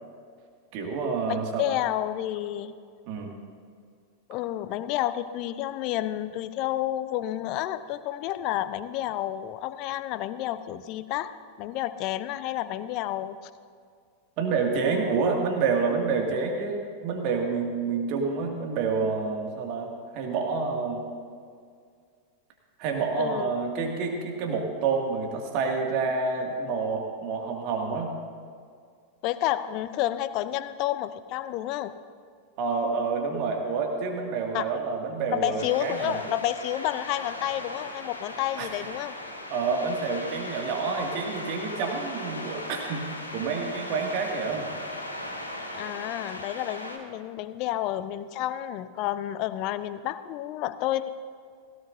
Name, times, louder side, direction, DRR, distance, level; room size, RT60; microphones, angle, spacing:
voice 1, 0.7-1.8 3.1-3.3 14.4-21.0 22.8-28.1 32.6-36.2 38.6-38.7 39.5-43.0 43.3-44.7, right 4 dB, 40° right, 1 dB, 2.2 m, -28 dB
voice 2, 1.3-2.7 4.3-13.5 14.8-15.0 23.2-23.5 29.2-31.9 34.5-34.7 35.3-39.2 45.7-51.1, left 13 dB, 40° left, 14 dB, 0.6 m, -30 dB
sound 1, 35.6-47.0, left 1 dB, 85° left, 1.9 m, -38 dB
17.0 x 16.5 x 2.7 m, 2.2 s
figure-of-eight pair, 90°, 0 cm